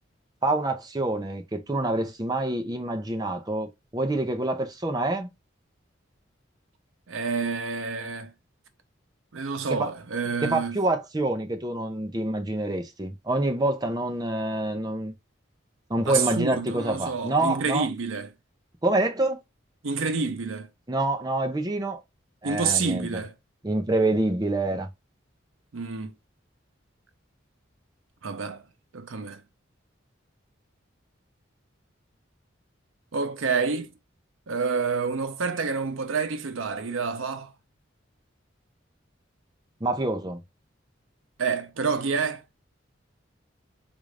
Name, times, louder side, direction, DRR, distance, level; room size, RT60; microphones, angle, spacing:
voice 1, 0.4-5.3 9.8-9.9 10.5-15.1 15.9-17.9 18.8-19.4 20.9-22.0 22.4-23.1 23.6-24.9 39.8-40.4, right 2 dB, 20° right, 0.6 m, -26 dB
voice 2, 7.1-8.3 9.3-10.8 16.1-18.3 19.8-20.7 22.4-23.3 25.7-26.1 28.2-28.6 28.9-29.4 33.1-33.9 34.5-37.5 41.4-42.4, right 5 dB, 90° right, 0.6 m, -28 dB
3.7 x 2.5 x 3.2 m
head